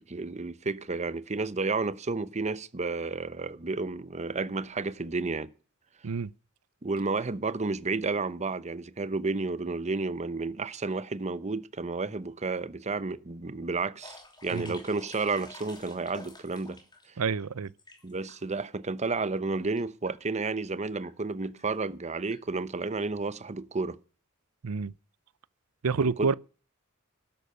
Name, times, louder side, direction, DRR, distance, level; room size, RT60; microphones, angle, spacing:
voice 1, 0.0-5.5 6.8-16.8 18.0-24.0 26.0-26.3, right 3 dB, 30° right, 0.8 m, -31 dB
sound 1, 14.0-17.1 17.4-18.6 19.2-19.3 19.5-19.8 20.1-20.2 20.8-21.1 21.4-21.6 22.3-22.4 22.8-22.9, left 2 dB, 20° left, 3.0 m, -49 dB
voice 2, 17.2-17.7 24.6-24.9 25.8-26.3, right 5 dB, 75° right, 0.6 m, -28 dB
13.0 x 11.0 x 6.8 m
head